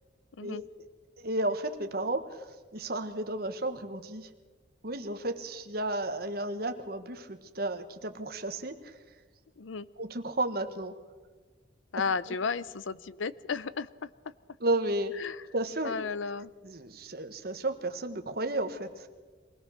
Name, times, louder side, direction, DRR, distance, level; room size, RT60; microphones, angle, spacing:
voice 1, 1.2-2.5 2.7-4.3 4.8-8.9 10.0-11.0 14.6-15.1 15.5-15.9 16.6-19.1, right 2 dB, 55° right, 8 dB, 1.4 m, -33 dB
voice 2, 9.6-9.9 11.9-14.1 15.2-15.4 15.8-16.5, left 5 dB, 85° left, 17 dB, 0.7 m, -33 dB
23.0 x 17.5 x 6.5 m, 1.3 s
head